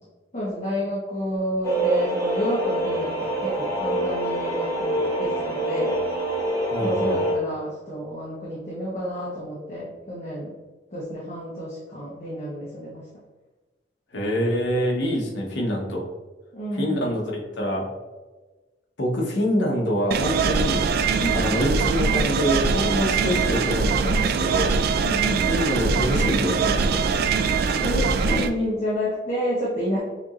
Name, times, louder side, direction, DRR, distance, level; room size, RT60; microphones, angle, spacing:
voice 1, 0.3-5.9 6.8-10.5 10.9-13.0 16.5-17.0 21.2-21.6 25.0-25.5 27.8-30.0, equal, 40° left, -7 dB, 1.1 m, -29 dB
sound 1, 1.6-7.3, right 1 dB, 15° left, 1.2 m, -26 dB
voice 2, 6.7-7.2 14.1-16.0 16.7-17.9 19.0-20.8 21.3-24.7 25.5-27.1, equal, 70° left, -1 dB, 1.2 m, -25 dB
sound 2, 20.1-28.5, right 5 dB, 55° right, 0.3 m, -22 dB
6.9 x 3.0 x 2.5 m, 1.2 s
head